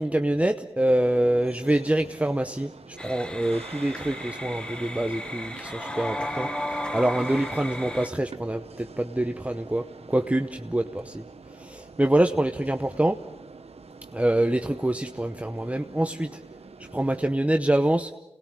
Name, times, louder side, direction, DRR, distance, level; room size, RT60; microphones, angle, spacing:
voice 1, 0.0-11.2 11.5-13.2 14.1-16.4 16.9-18.1, right 1 dB, 15° right, 6 dB, 0.9 m, -25 dB
sound 1, 0.8-17.3, right 4 dB, 85° right, 1.0 m, -46 dB
sound 2, 3.0-8.1, left 1 dB, 10° left, 1.6 m, -34 dB
28.0 x 19.5 x 7.5 m, 0.88 s
wide cardioid pair, 55°, 10 cm